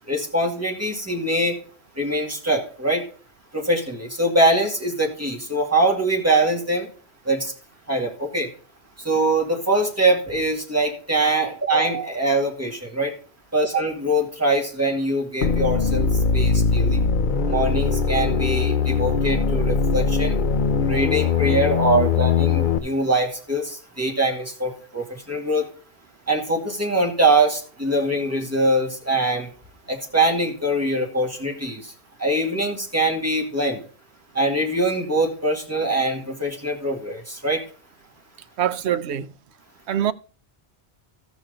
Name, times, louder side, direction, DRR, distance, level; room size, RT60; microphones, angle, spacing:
voice 1, 0.1-1.6 1.9-3.0 3.5-6.9 7.2-7.5 7.9-8.5 9.0-13.1 13.5-17.0 17.5-20.4 20.8-25.7 26.3-29.5 29.9-31.9 32.2-33.8 34.3-37.6, right 1 dB, 15° right, 2.2 m, -23 dB
sound 1, 15.4-22.8, left 5 dB, 50° left, 0.9 m, -21 dB
voice 2, 38.6-39.3 39.9-40.1, right 10 dB, 75° right, 0.9 m, -23 dB
14.5 x 6.2 x 3.9 m
omnidirectional pair, 1.1 m